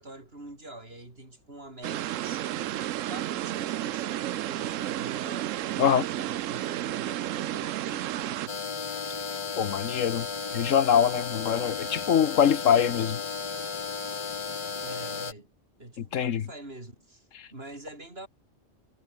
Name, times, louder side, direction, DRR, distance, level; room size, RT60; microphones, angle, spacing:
voice 1, 0.0-8.6 14.8-15.5 15.8-18.3, right 1 dB, 50° right, 5.7 m, -45 dB
sound 1, 1.8-8.5, right 13 dB, 80° right, 1.0 m, -32 dB
sound 2, 8.5-15.3, left 5 dB, 35° left, 0.5 m, -34 dB
voice 2, 9.6-10.3 10.5-13.2 16.1-16.5 17.4-17.5, left 8 dB, 75° left, 1.4 m, -23 dB
omnidirectional pair, 1.3 m